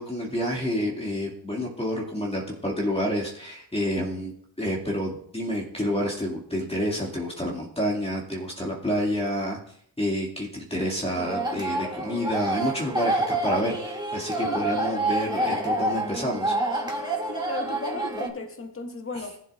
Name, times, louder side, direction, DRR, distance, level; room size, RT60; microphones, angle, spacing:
voice 1, 0.0-4.3 4.6-9.6 10.0-17.3 19.1-19.2, equal, 15° left, 2.3 m, -29 dB
sound 1, 11.2-18.3, right 2 dB, 10° right, 2.4 m, -28 dB
voice 2, 17.3-19.4, left 2 dB, 30° left, 1.8 m, -35 dB
15.0 x 7.7 x 2.5 m
supercardioid pair, 55°, 44 cm